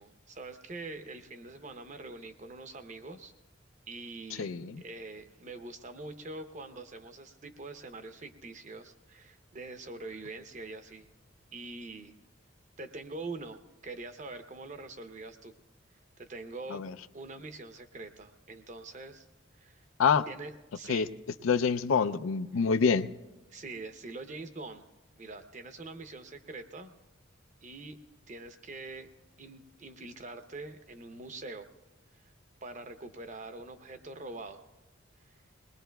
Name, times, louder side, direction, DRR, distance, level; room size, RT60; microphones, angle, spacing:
voice 1, 0.0-3.3 3.9-11.1 11.5-12.1 12.8-15.5 16.2-16.9 17.1-19.3 19.5-19.8 20.3-21.1 22.5-22.7 23.5-24.8 25.2-26.9 27.6-28.0 28.3-29.1 29.4-31.7 32.1-32.3 32.6-34.6 35.3-35.4, right 3 dB, 35° right, 7 dB, 0.7 m, -44 dB
voice 2, 4.4-4.8 16.7-16.9 20.0-20.3 20.9-21.1 21.4-23.1, left 6 dB, 90° left, 13 dB, 0.4 m, -26 dB
21.0 x 20.5 x 2.3 m, 1.0 s
head